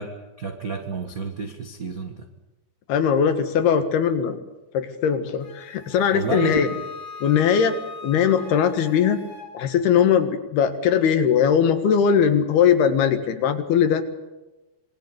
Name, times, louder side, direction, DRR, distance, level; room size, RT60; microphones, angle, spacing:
voice 1, 0.0-2.3 6.1-6.8, right 4 dB, 65° right, 5 dB, 0.8 m, -30 dB
voice 2, 2.9-4.4 4.7-6.7 7.2-9.2 9.5-14.0, left 8 dB, 75° left, 8 dB, 3.7 m, -20 dB
Wind instrument woodwind instrument, 5.4-9.5, left 4 dB, 55° left, 6.6 m, -39 dB
26.5 x 21.0 x 8.1 m, 1.0 s
omnidirectional pair, 4.7 m